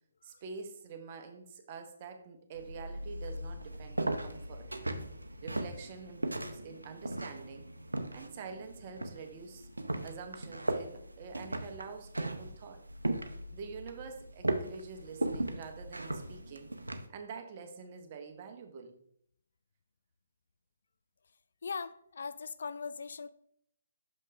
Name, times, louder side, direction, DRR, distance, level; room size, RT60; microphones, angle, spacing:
voice 1, 0.2-4.7 5.4-7.7 8.1-9.7 10.0-12.8 13.5-18.9, right 5 dB, 35° right, 0.9 m, -47 dB
sound 1, 2.5-17.1, right 1 dB, 85° right, 0.6 m, -38 dB
voice 2, 21.6-23.3, left 5 dB, 60° left, 0.3 m, -39 dB
6.4 x 5.4 x 3.2 m
figure-of-eight pair, 135°, 0 cm